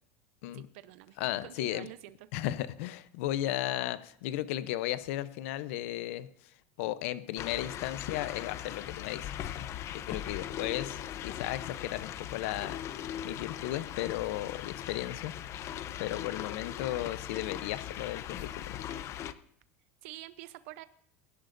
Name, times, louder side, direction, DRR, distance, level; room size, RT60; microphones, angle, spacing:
voice 1, 0.5-2.3 20.0-20.9, right 16 dB, 75° right, 13 dB, 0.7 m, -47 dB
voice 2, 1.2-1.9 2.3-6.3 6.8-9.3 10.1-12.8 13.2-15.3 16.0-18.8, left 14 dB, 75° left, 14 dB, 0.7 m, -35 dB
sound 1, 7.4-19.3, left 11 dB, 40° left, 0.7 m, -39 dB
23.0 x 11.0 x 2.6 m, 0.67 s
supercardioid pair, 135°, 7 cm